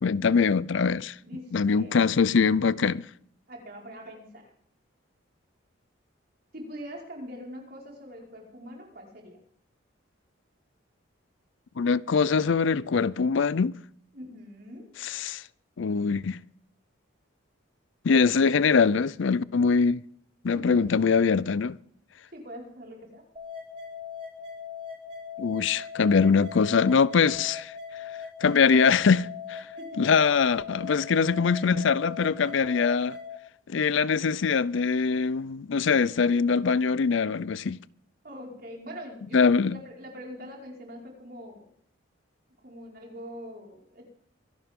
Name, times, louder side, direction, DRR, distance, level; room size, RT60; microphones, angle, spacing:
voice 1, 0.0-1.2 1.5-3.0 11.8-13.8 15.0-15.4 15.8-16.4 18.0-20.0 20.4-21.8 25.4-27.7 28.4-29.7 30.0-33.2 33.7-37.8 39.3-39.8, left 5 dB, 65° left, 0.5 m, -23 dB
voice 2, 1.2-2.0 3.5-4.5 6.5-9.4 14.1-14.9 20.5-21.0 22.3-23.2 29.8-30.1 38.2-41.7 42.6-44.1, equal, 45° right, 5.0 m, -43 dB
sound 1, 23.4-33.4, left 6 dB, 30° right, 3.5 m, -40 dB
24.5 x 11.5 x 3.7 m
head